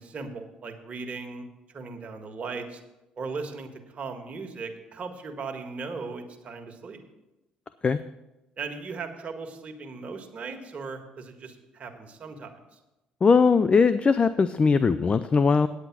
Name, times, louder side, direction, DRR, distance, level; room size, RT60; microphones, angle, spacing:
voice 1, 0.0-1.5 1.7-2.8 3.2-7.0 8.6-12.8, right 4 dB, 45° right, 4 dB, 1.7 m, -38 dB
voice 2, 13.2-15.7, left 5 dB, 35° left, 13 dB, 0.4 m, -20 dB
9.6 x 8.1 x 6.0 m, 0.99 s
supercardioid pair, 60°, 3 cm